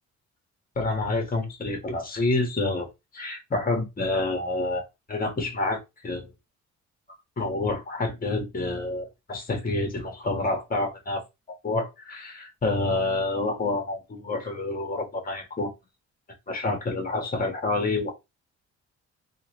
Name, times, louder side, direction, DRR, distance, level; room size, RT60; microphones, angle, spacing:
voice 1, 0.7-2.9 3.1-4.8 5.1-6.3 7.4-11.2 11.6-15.7 16.5-18.1, left 2 dB, 30° left, 1.6 m, -28 dB
3.7 x 2.6 x 3.1 m
cardioid pair, 90°, 30 cm